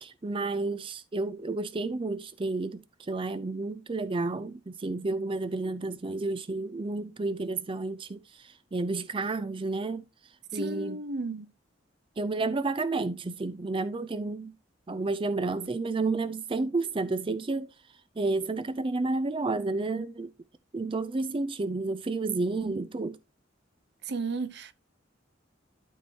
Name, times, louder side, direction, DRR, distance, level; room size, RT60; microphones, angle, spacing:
voice 1, 0.0-10.0 10.5-11.0 12.2-14.5 14.9-17.7 18.2-20.3 20.7-23.2, right 3 dB, 30° right, 0.5 m, -31 dB
voice 2, 10.5-11.5 24.0-24.7, right 3 dB, 65° right, 0.7 m, -33 dB
12.5 x 4.6 x 2.9 m
head